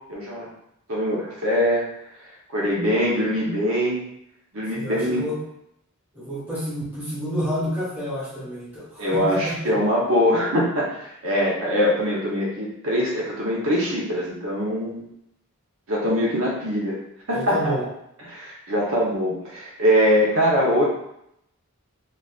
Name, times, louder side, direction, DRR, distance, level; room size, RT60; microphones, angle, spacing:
voice 1, 0.1-0.5 0.9-1.9 2.5-4.0 4.5-5.3 9.0-15.0 15.9-17.0 17.3-17.7 18.2-20.8, equal, 70° right, -5 dB, 0.9 m, -22 dB
voice 2, 4.7-5.4 6.1-9.7 17.3-17.8, equal, 10° right, -10 dB, 1.3 m, -29 dB
4.0 x 2.5 x 2.4 m, 0.76 s
head